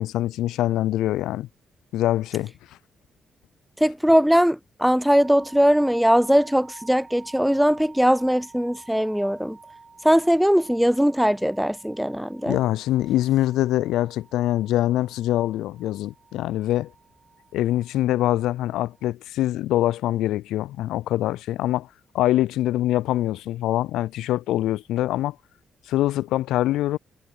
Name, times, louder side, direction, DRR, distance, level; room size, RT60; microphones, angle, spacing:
voice 1, 0.0-1.5 1.9-2.5 12.5-16.9 17.5-21.9 22.1-25.4 25.9-27.0, left 14 dB, 75° left, 0.4 m, -24 dB
voice 2, 3.8-9.6 10.0-12.6, equal, ahead, 0.4 m, -20 dB
sound 1, 5.1-19.1, right 4 dB, 35° right, 3.5 m, -49 dB
hypercardioid pair, 45°, 0 cm